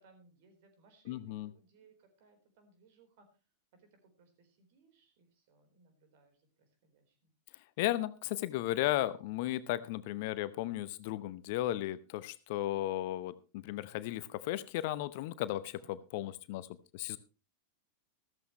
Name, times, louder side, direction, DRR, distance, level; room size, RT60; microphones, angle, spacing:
voice 1, 0.0-3.3 3.7-7.3 15.8-15.9, right 4 dB, 50° right, 7 dB, 4.1 m, -65 dB
voice 2, 1.1-1.5 7.8-16.7 16.9-17.2, left 15 dB, 50° left, 16 dB, 0.8 m, -35 dB
14.5 x 14.0 x 3.1 m, 0.31 s
figure-of-eight pair, 90°, 0 cm